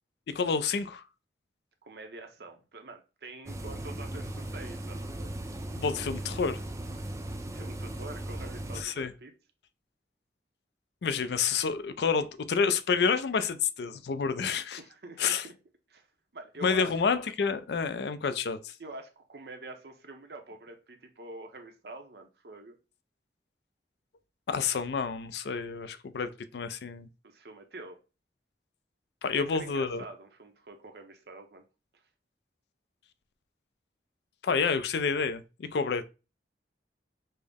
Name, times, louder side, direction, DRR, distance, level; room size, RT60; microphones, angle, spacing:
voice 1, 0.3-1.0 5.7-6.6 8.8-9.1 11.0-14.8 15.2-15.5 16.6-18.7 24.5-27.1 29.2-30.0 34.4-36.1, left 5 dB, 70° left, 0.4 m, -29 dB
voice 2, 1.8-5.3 7.5-9.3 14.8-15.5 15.9-16.1 16.3-16.9 18.8-22.8 27.2-28.0 29.3-31.6, right 2 dB, 65° right, 0.7 m, -46 dB
sound 1, 3.5-8.8, right 1 dB, 15° right, 0.4 m, -37 dB
5.4 x 2.0 x 3.4 m
head